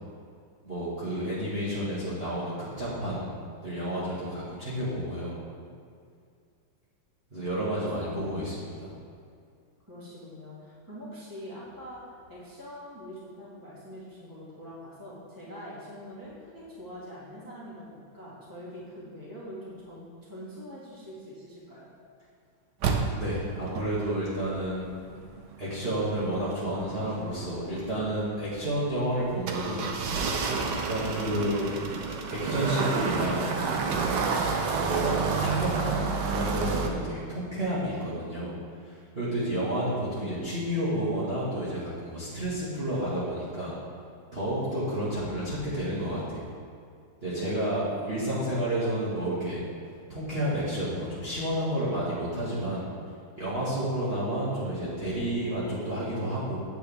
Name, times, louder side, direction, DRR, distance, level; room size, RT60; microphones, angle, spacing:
voice 1, 0.6-3.3 3.6-5.3 7.3-8.9 23.2-24.9 25.6-29.9 30.9-31.7 32.3-33.5 34.7-38.6 38.8-43.7 44.3-46.4 47.2-49.6 50.1-52.9 53.4-56.6, right 1 dB, 30° right, -10 dB, 1.9 m, -30 dB
voice 2, 7.7-8.2 9.9-21.9, equal, 10° right, -8 dB, 1.9 m, -44 dB
sound 1, 22.8-36.9, right 4 dB, 65° right, 1.3 m, -30 dB
9.1 x 8.4 x 3.5 m, 2.3 s
omnidirectional pair, 2.3 m